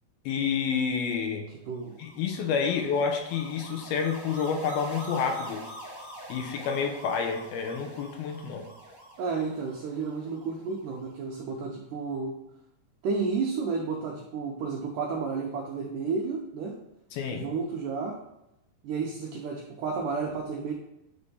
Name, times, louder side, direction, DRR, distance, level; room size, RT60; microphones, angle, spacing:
voice 1, 0.3-1.5 2.0-5.6 6.3-8.7 17.1-17.5, left 6 dB, 75° left, 4 dB, 2.7 m, -29 dB
voice 2, 1.7-2.0 9.2-12.3 13.0-16.8 17.3-18.2 18.8-20.7, right 4 dB, 90° right, -1 dB, 1.8 m, -31 dB
sound 1, 1.8-11.1, right 1 dB, 10° left, 1.2 m, -45 dB
9.7 x 3.4 x 5.5 m, 0.89 s
omnidirectional pair, 4.7 m